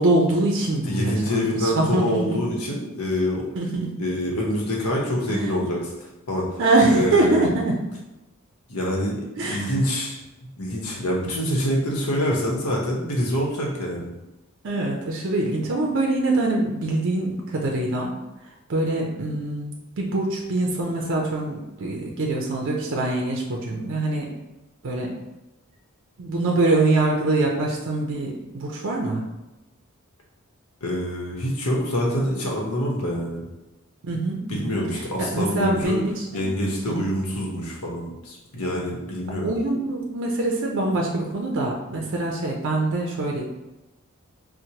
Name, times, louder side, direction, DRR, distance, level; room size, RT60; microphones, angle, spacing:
voice 1, 0.0-2.4 3.6-4.0 5.3-5.5 6.6-7.8 9.4-9.7 14.6-18.1 18.7-24.3 24.8-25.1 26.2-29.2 34.0-34.8 35.2-36.5 36.9-37.1 39.4-43.4, right 2 dB, 60° right, -1 dB, 0.5 m, -24 dB
voice 2, 0.8-3.5 4.0-6.6 6.9-7.5 8.7-10.2 10.6-14.1 30.8-33.4 34.5-36.0 36.3-39.5, equal, 85° left, -2 dB, 0.9 m, -26 dB
4.4 x 2.1 x 2.8 m, 1.0 s
head